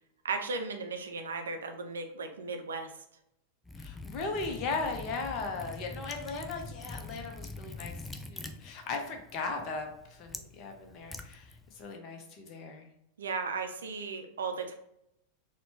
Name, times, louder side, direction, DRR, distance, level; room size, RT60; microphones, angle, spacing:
voice 1, 0.2-2.9 13.2-14.7, right 4 dB, 65° right, 5 dB, 0.5 m, -36 dB
Liquid, 3.6-11.9, left 3 dB, 10° left, 0.3 m, -45 dB
voice 2, 3.8-12.9, left 4 dB, 40° left, 3 dB, 0.7 m, -38 dB
4.1 x 2.2 x 2.8 m, 0.78 s
figure-of-eight pair, 90°, 0 cm